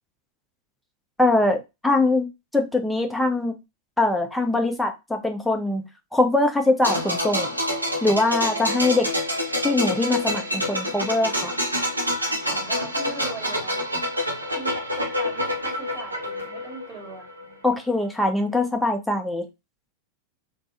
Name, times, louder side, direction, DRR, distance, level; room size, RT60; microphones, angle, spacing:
voice 1, 1.2-2.3 2.5-3.5 4.0-7.5 8.0-9.1 9.6-11.5 17.6-19.4, left 2 dB, 5° left, 0.6 m, -22 dB
sound 1, 6.8-17.5 17.7-17.9, left 1 dB, 85° right, 0.7 m, -27 dB
voice 2, 12.5-14.1 14.6-17.6, right 3 dB, 25° right, 1.5 m, -40 dB
3.3 x 2.1 x 2.5 m
figure-of-eight pair, 90°, 0 cm